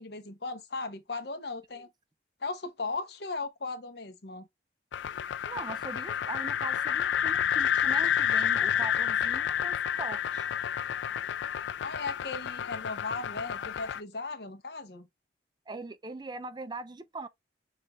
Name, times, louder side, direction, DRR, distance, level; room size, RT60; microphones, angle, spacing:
voice 1, 0.0-1.9 2.4-4.5 11.8-15.1, left 3 dB, 60° left, 0.9 m, -37 dB
sound 1, 4.9-14.0, left 9 dB, 80° left, 0.3 m, -30 dB
voice 2, 5.4-10.5 15.7-17.3, right 3 dB, 25° right, 0.4 m, -41 dB
6.7 x 2.4 x 3.0 m
head